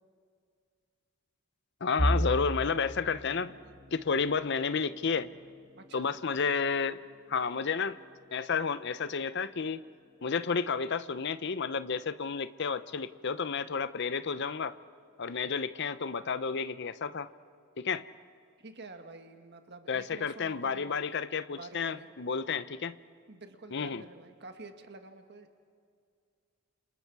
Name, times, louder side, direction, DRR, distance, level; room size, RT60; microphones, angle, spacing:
voice 1, 1.8-3.5 3.9-5.3 5.9-7.0 7.3-8.0 8.3-9.8 10.2-14.7 15.2-17.3 17.8-18.0 19.9-23.0 23.7-24.0, left 5 dB, 55° left, 13 dB, 0.6 m, -31 dB
sound 1, 2.0-13.8 14.2-14.5 14.9-15.0 15.9-16.4, equal, 35° right, 1.8 m, -39 dB
voice 2, 5.8-6.1 18.6-21.2 21.5-22.1 22.5-22.6 23.3-25.5, right 2 dB, 50° right, 6 dB, 1.5 m, -49 dB
29.5 x 28.0 x 4.7 m, 2.3 s
head